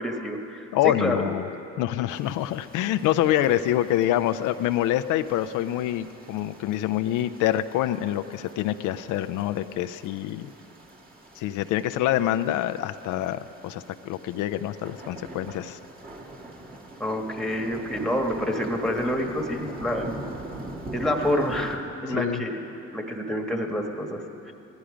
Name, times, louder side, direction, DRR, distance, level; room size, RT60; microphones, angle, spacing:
voice 1, 0.0-1.3 17.0-20.1 20.9-22.6 22.9-24.5, equal, ahead, 2 dB, 1.4 m, -28 dB
voice 2, 0.7-1.5 1.8-10.5 11.4-15.8 22.1-22.4, left 13 dB, 90° left, 10 dB, 0.5 m, -26 dB
sound 1, 2.1-21.8, right 1 dB, 30° right, 1.9 m, -43 dB
17.0 x 11.5 x 5.0 m, 2.8 s
cardioid pair, 90°, 30 cm